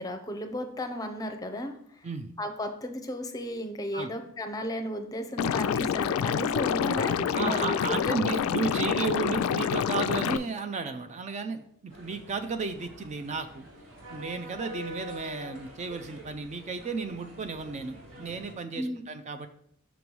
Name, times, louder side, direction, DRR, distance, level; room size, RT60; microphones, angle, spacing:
voice 1, 0.0-1.8 2.4-8.4 18.8-19.0, equal, 15° left, 5 dB, 0.6 m, -34 dB
Liquid, 5.4-10.4, left 8 dB, 85° left, 0.3 m, -27 dB
voice 2, 7.4-13.7 14.1-19.5, right 4 dB, 35° right, 8 dB, 0.4 m, -33 dB
sound 1, 11.9-18.5, equal, 75° right, 2.1 m, -45 dB
6.0 x 3.1 x 5.2 m, 0.66 s
head